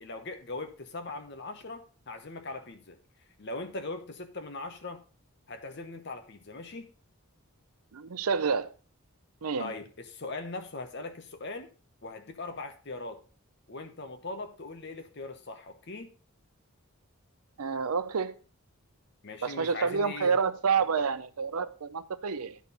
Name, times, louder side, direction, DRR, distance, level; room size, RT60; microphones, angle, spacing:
voice 1, 0.0-3.0 3.4-5.0 5.5-6.9 9.6-11.7 12.0-13.2 13.7-16.2 19.2-20.3 20.8-21.0, left 3 dB, 50° left, 1.0 m, -40 dB
voice 2, 7.9-8.7 9.4-9.7 17.6-18.4 19.4-22.6, right 5 dB, 90° right, 0.6 m, -29 dB
10.5 x 4.4 x 5.2 m
head